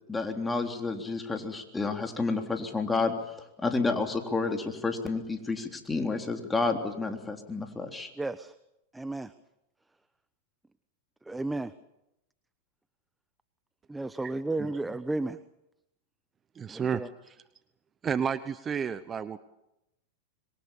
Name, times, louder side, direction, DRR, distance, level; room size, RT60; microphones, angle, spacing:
voice 1, 0.1-8.1, left 3 dB, 10° left, 4 dB, 3.5 m, -30 dB
voice 2, 8.2-8.5 8.9-9.3 11.3-11.7 13.9-15.4 16.7-17.1, right 2 dB, 10° right, 13 dB, 0.9 m, -33 dB
voice 3, 16.5-17.4 18.0-19.4, right 7 dB, 25° right, 13 dB, 1.0 m, -31 dB
26.0 x 22.5 x 7.2 m, 0.87 s
hypercardioid pair, 105°, 0 cm